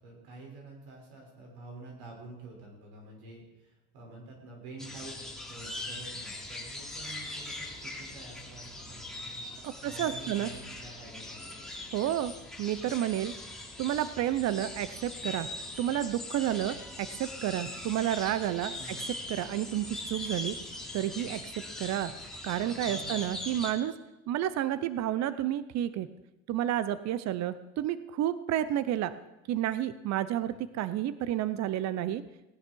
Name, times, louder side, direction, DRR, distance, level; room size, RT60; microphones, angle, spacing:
voice 1, 0.0-5.2 5.5-9.4 9.8-11.7 18.8-19.1 22.8-23.3 30.5-30.6, right 2 dB, 80° right, -1 dB, 6.1 m, -48 dB
sound 1, 4.8-23.7, left 2 dB, ahead, 3.4 m, -41 dB
voice 2, 9.6-10.5 11.9-12.3 12.6-13.3 13.8-15.5 15.8-19.0 19.3-20.6 20.9-21.4 21.8-22.1 22.4-23.9 24.3-26.1 26.5-29.1 29.5-32.2, right 12 dB, 55° right, 14 dB, 0.9 m, -30 dB
18.0 x 10.5 x 4.7 m, 1.0 s
supercardioid pair, 100°, 32 cm